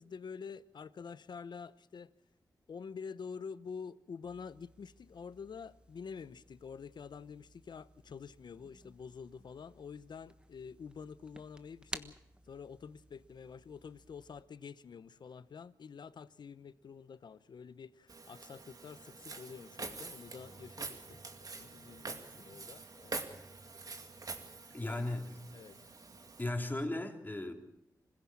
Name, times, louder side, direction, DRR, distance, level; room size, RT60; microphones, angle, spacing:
voice 1, 0.0-2.1 2.7-12.1 12.5-23.3 24.4-25.1 25.5-25.8, left 6 dB, 75° left, 0.8 m, -48 dB
sound 1, 4.2-14.4, right 1 dB, 10° right, 1.3 m, -54 dB
Walk footsteps, 18.1-26.4, right 3 dB, 55° right, 2.4 m, -46 dB
voice 2, 24.7-25.4 26.4-27.5, left 2 dB, 25° left, 3.3 m, -36 dB
26.0 x 16.0 x 7.5 m
wide cardioid pair, 75°, 8 cm